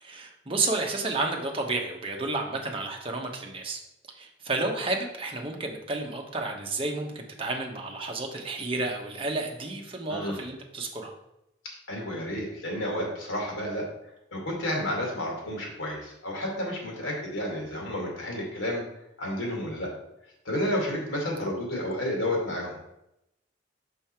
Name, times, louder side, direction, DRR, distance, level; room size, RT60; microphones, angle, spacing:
voice 1, 0.0-3.8 4.2-11.1, right 3 dB, 25° right, 1 dB, 0.9 m, -31 dB
voice 2, 11.9-13.8 14.3-18.8 19.2-19.9 20.4-22.8, left 1 dB, 90° left, -1 dB, 2.4 m, -31 dB
5.6 x 5.5 x 4.4 m, 0.86 s
head